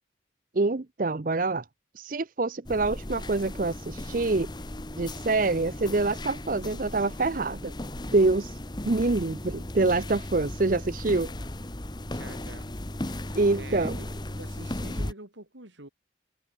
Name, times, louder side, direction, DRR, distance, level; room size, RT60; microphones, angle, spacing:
voice 1, 0.5-1.6 2.0-4.5 5.0-7.7 8.1-8.6 8.8-11.3 13.3-14.0, right 3 dB, 45° right, 0.7 m, -26 dB
sound 1, 2.7-15.1, left 1 dB, 25° left, 1.3 m, -36 dB
voice 2, 12.1-12.7 13.2-15.9, right 2 dB, 80° right, 4.9 m, -46 dB
head